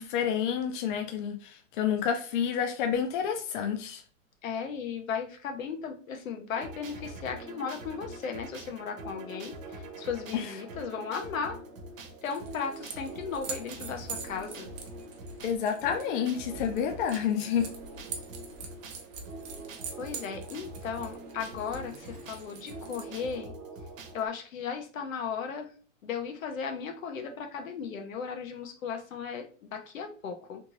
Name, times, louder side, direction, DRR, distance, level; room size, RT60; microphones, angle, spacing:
voice 1, 0.0-4.0 10.3-10.4 15.4-17.7, left 8 dB, 40° left, 0.6 m, -29 dB
voice 2, 4.4-11.6 12.2-14.7 20.0-23.5 24.1-25.7 26.0-30.6, left 6 dB, 85° left, 1.1 m, -36 dB
sound 1, 6.5-24.3, right 2 dB, 80° right, 1.0 m, -44 dB
sound 2, 12.2-23.4, right 5 dB, 30° right, 0.6 m, -45 dB
3.4 x 2.6 x 3.0 m
hypercardioid pair, 155°, 39 cm